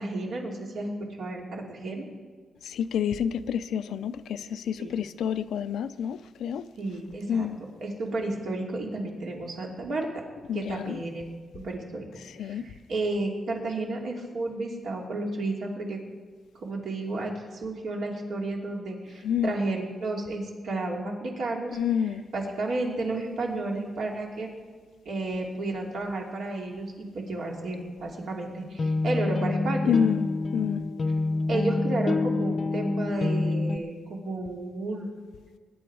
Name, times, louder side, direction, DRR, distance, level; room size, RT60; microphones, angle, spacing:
voice 1, 0.0-2.1 4.8-4.9 6.8-7.5 7.8-10.2 10.5-11.3 11.5-12.1 12.4-16.0 16.6-21.8 22.3-24.5 25.0-29.9 31.5-35.1, right 2 dB, 65° right, 2.6 m, -32 dB
voice 2, 2.6-6.7 7.3-7.6 10.5-11.0 12.2-12.6 19.2-19.5 21.7-22.3 29.9-30.3 30.5-30.9, left 8 dB, 80° left, 0.5 m, -28 dB
sound 1, 28.6-33.8, left 3 dB, 40° left, 0.7 m, -27 dB
21.0 x 10.0 x 4.8 m
cardioid pair, 120°, 0 cm